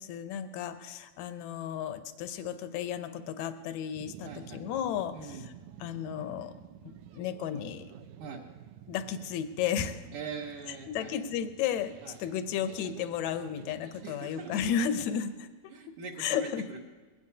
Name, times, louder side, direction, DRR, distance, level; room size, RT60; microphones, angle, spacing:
voice 1, 0.0-5.5 5.8-6.5 7.1-7.9 8.9-10.2 10.9-15.5 16.2-16.7, left 8 dB, 80° left, 9 dB, 1.6 m, -33 dB
sound 1, 3.9-15.0, right 9 dB, 85° right, 1.7 m, -51 dB
voice 2, 4.2-4.6 5.1-5.5 8.2-8.4 10.1-11.3 12.0-12.2 14.0-14.6 15.7-16.8, right 5 dB, 65° right, -3 dB, 2.5 m, -42 dB
21.0 x 17.5 x 2.8 m, 1.4 s
omnidirectional pair, 4.2 m